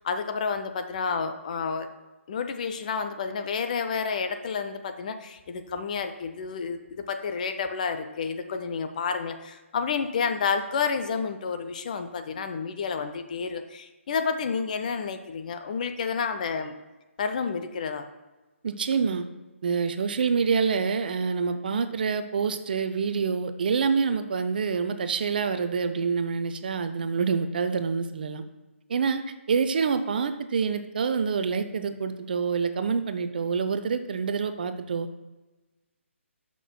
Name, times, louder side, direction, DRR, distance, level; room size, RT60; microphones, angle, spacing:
voice 1, 0.0-1.9 2.3-16.7 17.2-18.1, left 5 dB, 35° left, 8 dB, 0.5 m, -30 dB
voice 2, 18.6-19.2 19.6-28.4 28.9-35.1, right 5 dB, 45° right, 9 dB, 0.5 m, -27 dB
14.5 x 6.0 x 2.2 m, 1.1 s
figure-of-eight pair, 140°, 7 cm